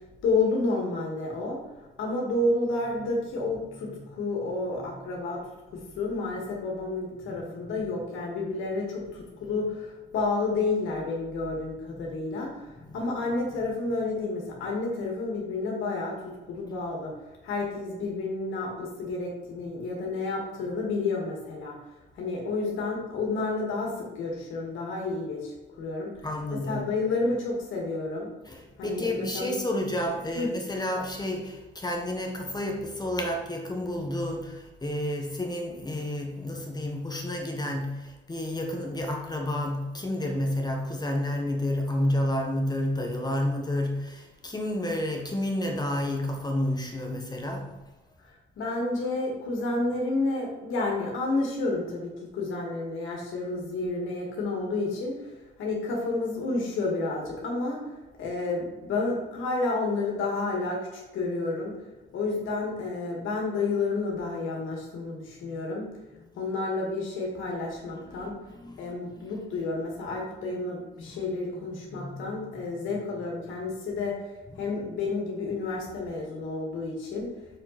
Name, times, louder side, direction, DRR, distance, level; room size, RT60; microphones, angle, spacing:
voice 1, 0.2-1.6 2.0-5.4 5.7-12.6 12.9-17.1 17.4-21.8 22.1-26.1 26.7-28.3 28.8-29.6 30.3-30.5 48.6-55.3 55.6-57.8 58.2-61.7 62.1-65.9 66.4-68.3 68.8-74.1 74.6-77.3, left 3 dB, 85° left, -1 dB, 2.3 m, -30 dB
voice 2, 3.4-4.1 4.8-5.2 7.3-7.4 11.9-12.0 12.8-13.0 13.6-13.7 26.2-26.8 28.4-47.7 65.4-65.5 66.2-66.3 67.9-69.7 70.1-70.2 70.5-70.6 71.0-71.3 71.9-72.7 74.5-74.7, left 1 dB, 20° left, 2 dB, 1.3 m, -31 dB
6.8 x 5.7 x 4.3 m, 1.2 s
cardioid pair, 90°, 20 cm